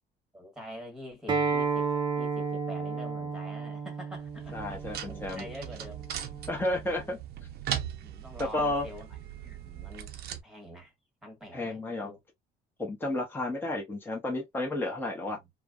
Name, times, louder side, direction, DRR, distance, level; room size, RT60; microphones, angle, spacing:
voice 1, 0.3-1.9 2.2-4.6 5.1-6.1 6.8-7.1 7.5-10.2 10.4-10.9 11.2-12.2 15.2-15.5, equal, 5° right, 1.5 m, -46 dB
Acoustic guitar, 1.3-6.5, right 5 dB, 25° right, 0.8 m, -32 dB
sound 1, 4.1-10.4, right 10 dB, 70° right, 0.6 m, -39 dB
voice 2, 4.5-5.4 6.5-7.2 8.5-8.8 11.5-12.1 12.8-15.4, left 2 dB, 10° left, 0.9 m, -32 dB
3.2 x 2.2 x 2.4 m
cardioid pair, 110°, 17 cm